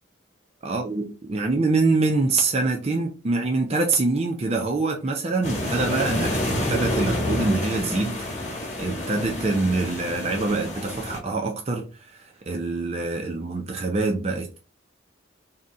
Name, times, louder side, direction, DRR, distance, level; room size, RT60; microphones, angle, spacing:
voice 1, 0.6-14.6, right 3 dB, 30° right, 0.5 m, -25 dB
sound 1, 5.4-11.2, left 1 dB, 35° left, 1.4 m, -28 dB
3.7 x 2.8 x 3.7 m
head